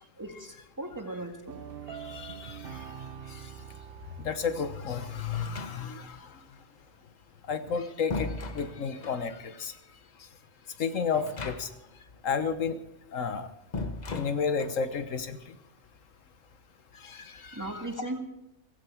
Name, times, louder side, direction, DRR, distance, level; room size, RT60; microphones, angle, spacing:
voice 1, 0.2-1.6 17.5-18.2, right 1 dB, 15° right, 3 dB, 1.9 m, -37 dB
sound 1, 1.5-6.0, right 7 dB, 50° right, 1.0 m, -45 dB
voice 2, 1.9-2.9 3.3-3.5 4.2-6.3 7.5-9.7 10.8-11.7 12.2-12.8 13.1-13.5 14.1-15.6 17.0-17.8, left 6 dB, 90° left, 10 dB, 1.5 m, -32 dB
sound 2, 5.3-6.2 7.4-9.3 11.1-12.0 12.2-12.3 13.7-14.9, left 3 dB, 35° left, 1.0 m, -37 dB
16.5 x 16.0 x 4.6 m, 0.84 s
omnidirectional pair, 1.3 m